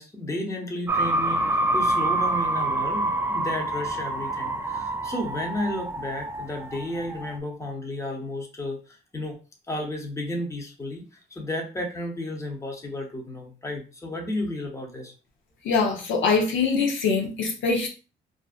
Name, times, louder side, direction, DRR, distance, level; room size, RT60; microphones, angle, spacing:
voice 1, 0.0-9.4 9.7-11.0 11.3-15.1, left 1 dB, 15° left, 0.8 m, -33 dB
sound 1, 0.9-7.4, right 2 dB, 10° right, 0.3 m, -27 dB
voice 2, 15.6-17.9, left 4 dB, 75° left, 0.7 m, -23 dB
2.5 x 2.2 x 2.4 m
cardioid pair, 90°, 20 cm